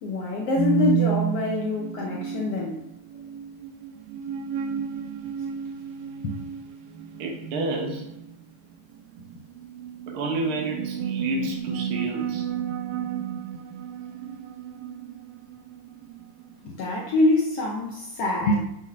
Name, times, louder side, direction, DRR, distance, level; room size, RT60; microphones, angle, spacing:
voice 1, 0.0-2.8 6.2-6.4 16.6-18.6, left 2 dB, 75° left, -1 dB, 1.4 m, -25 dB
sound 1, 0.6-17.2, right 9 dB, 85° right, 2.4 m, -32 dB
voice 2, 7.2-8.1 10.1-12.5, right 2 dB, 70° right, 1 dB, 1.3 m, -30 dB
6.8 x 6.2 x 5.5 m, 0.86 s
omnidirectional pair, 3.8 m